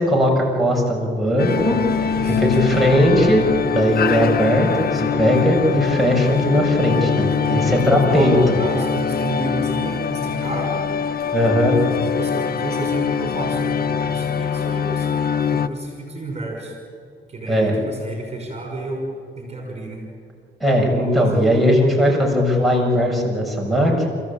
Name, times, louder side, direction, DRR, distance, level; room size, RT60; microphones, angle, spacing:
voice 1, 0.0-1.8 2.2-8.4 11.3-11.8 17.5-17.7 20.6-24.1, equal, ahead, -3 dB, 7.2 m, -18 dB
sound 1, 1.4-15.7, left 7 dB, 50° left, 1.0 m, -23 dB
voice 2, 1.9-2.9 7.3-10.9 12.0-16.7 17.3-19.1 19.4-20.0 21.1-21.6, right 2 dB, 30° right, 1 dB, 5.8 m, -31 dB
29.0 x 15.5 x 8.8 m, 2.3 s
cardioid pair, 90°, 20 cm